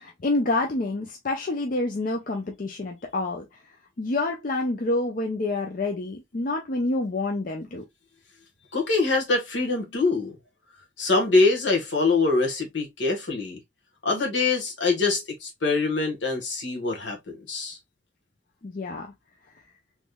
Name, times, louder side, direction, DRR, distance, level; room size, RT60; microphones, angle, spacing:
voice 1, 0.0-3.5 4.0-7.8 18.6-19.1, left 2 dB, 45° left, 0.5 m, -27 dB
voice 2, 8.7-10.3 11.0-13.6 14.0-17.8, left 3 dB, 75° left, 1.4 m, -24 dB
3.6 x 3.1 x 2.2 m
head